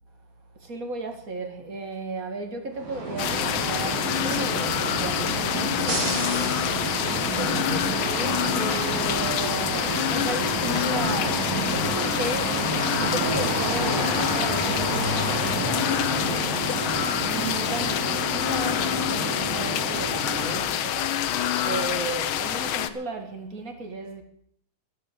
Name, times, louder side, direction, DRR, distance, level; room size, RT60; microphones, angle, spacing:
voice 1, 0.6-6.7 7.0-12.6 13.0-21.3 21.6-24.2, right 3 dB, 35° right, 1.9 m, -35 dB
sound 1, 2.7-20.8, right 2 dB, 55° right, 4.8 m, -29 dB
sound 2, 3.2-22.9, left 10 dB, 85° left, 1.1 m, -27 dB
12.5 x 11.0 x 8.5 m
omnidirectional pair, 3.4 m